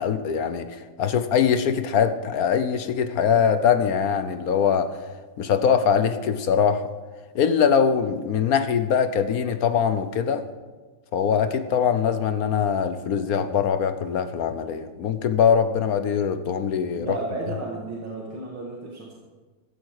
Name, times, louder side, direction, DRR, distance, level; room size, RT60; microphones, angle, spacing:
voice 1, 0.0-5.0 5.4-6.8 7.3-10.4 11.1-17.1, left 7 dB, 60° left, 10 dB, 1.1 m, -22 dB
voice 2, 17.0-19.1, right 2 dB, 75° right, -3 dB, 2.8 m, -33 dB
16.0 x 13.0 x 4.8 m, 1.3 s
omnidirectional pair, 2.2 m